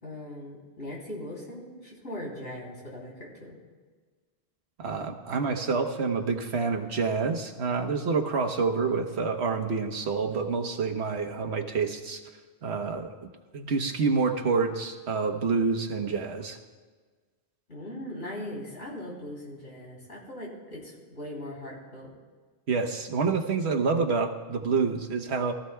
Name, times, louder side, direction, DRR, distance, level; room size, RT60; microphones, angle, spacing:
voice 1, 0.0-3.6 17.7-22.1, left 1 dB, 70° left, -4 dB, 3.6 m, -40 dB
voice 2, 4.8-12.2 12.6-13.1 13.5-16.6 22.7-25.5, right 4 dB, 75° right, 4 dB, 1.3 m, -27 dB
22.0 x 14.0 x 2.3 m, 1.4 s
omnidirectional pair, 1.1 m